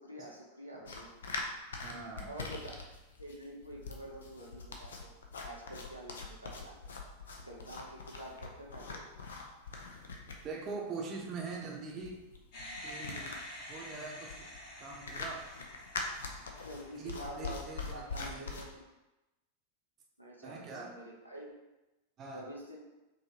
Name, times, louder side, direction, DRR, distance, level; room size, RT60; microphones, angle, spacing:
voice 1, 0.0-1.1 2.2-2.7 3.2-5.1 5.4-6.9 7.4-9.1 16.6-18.8 20.2-21.5 22.3-22.8, equal, 90° right, -3 dB, 0.7 m, -47 dB
sound 1, 0.8-18.6, left 3 dB, 65° left, 0.6 m, -43 dB
voice 2, 1.8-2.3 10.4-12.2 12.8-13.3 13.7-14.5 14.8-15.4 16.9-18.6 20.4-20.9 22.2-22.5, right 4 dB, 30° right, -1 dB, 0.8 m, -43 dB
sound 2, 12.5-18.0, left 1 dB, 45° left, 1.3 m, -49 dB
4.8 x 3.0 x 2.9 m, 1.0 s
figure-of-eight pair, 90°, 0 cm